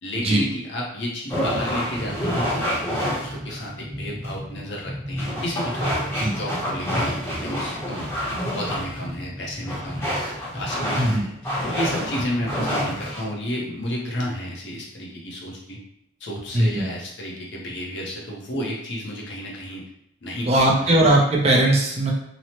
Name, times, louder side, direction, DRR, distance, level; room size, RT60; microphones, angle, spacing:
voice 1, 0.0-8.1 8.5-10.2 10.5-11.3 11.6-15.8 16.2-19.9 20.2-20.9, equal, 65° left, -3 dB, 0.7 m, -32 dB
sound 1, 1.3-13.3, equal, 15° left, 0.7 m, -28 dB
voice 2, 16.5-16.8 20.5-22.1, right 1 dB, 30° right, -2 dB, 0.4 m, -19 dB
2.9 x 2.0 x 2.8 m, 0.75 s
head